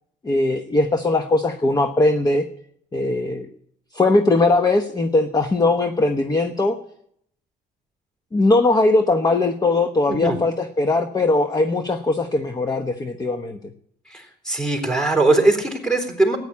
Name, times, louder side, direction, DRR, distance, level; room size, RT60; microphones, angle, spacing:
voice 1, 0.2-2.4 2.9-3.5 3.9-6.8 8.3-13.6, left 2 dB, 25° left, 7 dB, 1.1 m, -20 dB
voice 2, 14.1-16.4, right 2 dB, 5° left, 2 dB, 3.9 m, -20 dB
14.5 x 9.8 x 8.6 m, 0.69 s
cardioid pair, 110°, 17 cm